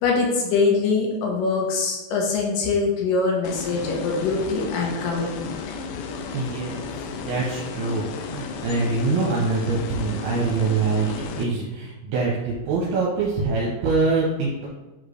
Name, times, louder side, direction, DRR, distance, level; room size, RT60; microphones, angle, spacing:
voice 1, 0.0-5.6, left 4 dB, 65° left, -1 dB, 2.4 m, -23 dB
sound 1, 3.4-11.4, left 5 dB, 90° left, 2.7 m, -34 dB
voice 2, 6.3-6.9 7.1-14.7, right 3 dB, 75° right, -4 dB, 2.7 m, -24 dB
7.9 x 4.4 x 3.3 m, 1.1 s
omnidirectional pair, 4.9 m